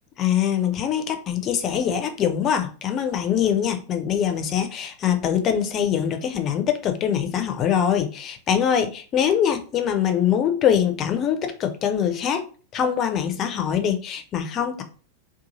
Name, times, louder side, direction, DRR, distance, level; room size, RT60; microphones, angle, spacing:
voice 1, 0.2-12.4 12.7-14.8, left 9 dB, 30° left, 7 dB, 0.4 m, -23 dB
2.6 x 2.3 x 2.8 m, 0.38 s
figure-of-eight pair, 90°, 0 cm